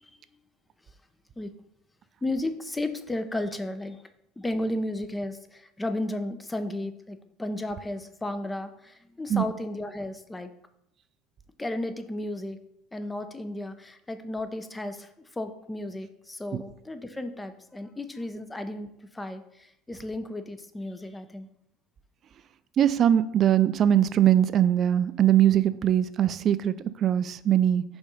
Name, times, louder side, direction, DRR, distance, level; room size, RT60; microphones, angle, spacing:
voice 1, 2.2-4.0 4.4-10.5 11.6-12.6 12.9-15.1 15.4-21.5, left 1 dB, 15° left, 9 dB, 0.6 m, -34 dB
voice 2, 22.8-27.8, right 10 dB, 45° right, 14 dB, 0.4 m, -21 dB
5.2 x 3.6 x 5.3 m, 0.77 s
hypercardioid pair, 75°, 0 cm